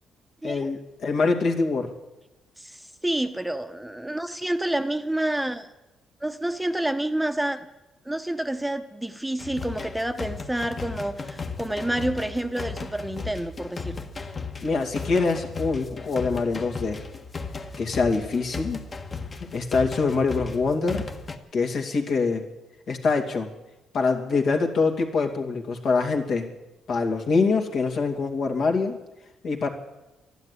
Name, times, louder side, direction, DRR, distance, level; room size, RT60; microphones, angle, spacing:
voice 1, 0.4-1.9 14.6-17.0 17.8-18.8 19.5-21.0 21.5-22.4 22.9-23.5 23.9-26.5 26.9-29.0 29.4-29.7, left 4 dB, 65° left, 3 dB, 2.5 m, -24 dB
voice 2, 2.6-5.7 6.2-7.7 8.1-14.0, right 1 dB, 5° right, 8 dB, 0.9 m, -28 dB
sound 1, 9.4-21.4, left 4 dB, 35° left, 1.5 m, -36 dB
12.0 x 12.0 x 9.9 m, 0.98 s
cardioid pair, 90°, 0 cm